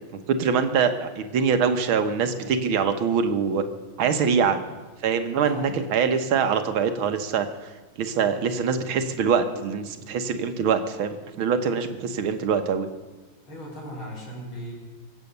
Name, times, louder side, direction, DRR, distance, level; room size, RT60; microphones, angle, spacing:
voice 1, 0.1-3.6 4.0-4.6 5.0-7.7 8.0-12.9, right 6 dB, 85° right, 8 dB, 1.9 m, -24 dB
voice 2, 5.3-5.8 13.5-14.7, equal, 80° left, -2 dB, 5.5 m, -37 dB
23.0 x 8.3 x 6.7 m, 1.2 s
omnidirectional pair, 2.2 m